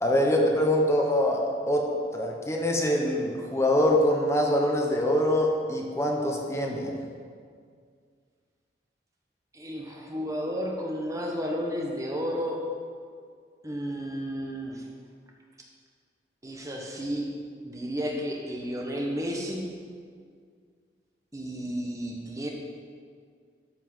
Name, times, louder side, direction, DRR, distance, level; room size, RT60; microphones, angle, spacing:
voice 1, 0.0-1.8 2.1-6.9, left 1 dB, 15° left, 0 dB, 1.1 m, -24 dB
voice 2, 9.5-12.6 13.6-14.9 16.4-17.3 17.6-19.7 21.3-22.5, equal, 20° right, 0 dB, 1.1 m, -32 dB
12.5 x 5.5 x 5.6 m, 2.1 s
head